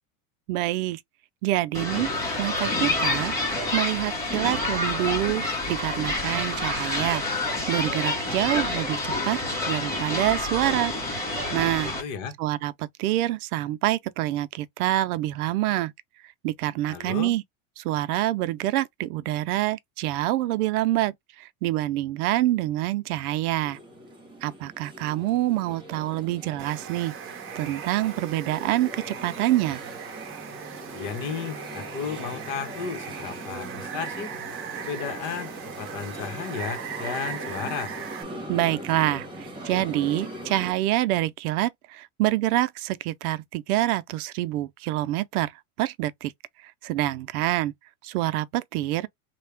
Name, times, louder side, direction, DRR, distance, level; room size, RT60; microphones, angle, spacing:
voice 1, 0.5-1.0 1.4-3.3 3.7-7.2 7.7-9.4 9.7-10.9 11.5-11.9 12.4-15.9 16.4-17.4 17.8-21.1 21.4-23.8 24.4-29.8 38.5-39.3 39.6-45.5 45.8-46.3 46.8-47.7 48.0-49.1, right 15 dB, 85° right, 0.6 m, -26 dB
sound 1, 1.7-12.0, left 2 dB, 5° left, 1.9 m, -28 dB
voice 2, 11.8-12.3 16.9-17.3 30.9-34.3 34.8-35.5 35.8-37.9, left 6 dB, 45° left, 1.3 m, -34 dB
sound 2, 23.6-40.7, equal, 10° right, 1.3 m, -41 dB
Water, 26.6-38.2, right 8 dB, 30° right, 0.8 m, -39 dB
3.2 x 2.4 x 3.3 m
supercardioid pair, 150°, 43 cm